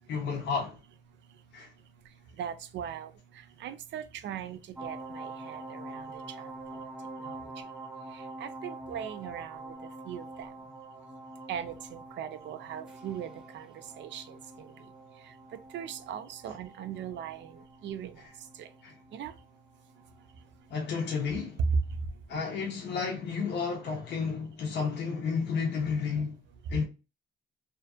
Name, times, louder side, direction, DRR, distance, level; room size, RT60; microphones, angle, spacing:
voice 1, 0.1-0.8 1.5-1.7 18.8-18.9 20.7-21.6 22.3-26.4 26.7-26.8, left 5 dB, 60° left, 0.7 m, -31 dB
voice 2, 2.4-3.1 3.6-6.5 7.2-7.4 8.4-9.7 10.1-10.5 11.5-14.7 15.7-18.2 18.6-18.7 19.1-19.3, right 9 dB, 65° right, 0.4 m, -40 dB
sound 1, 4.8-20.3 20.6-20.8, right 2 dB, 5° right, 0.6 m, -46 dB
2.5 x 2.5 x 2.4 m
cardioid pair, 90°, 20 cm